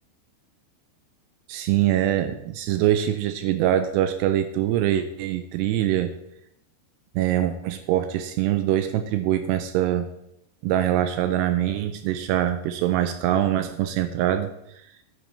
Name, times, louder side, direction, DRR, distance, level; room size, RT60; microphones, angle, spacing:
voice 1, 1.5-6.1 7.2-10.1 10.6-14.5, right 12 dB, 80° right, 9 dB, 2.6 m, -23 dB
11.0 x 10.0 x 4.3 m, 0.79 s
omnidirectional pair, 5.1 m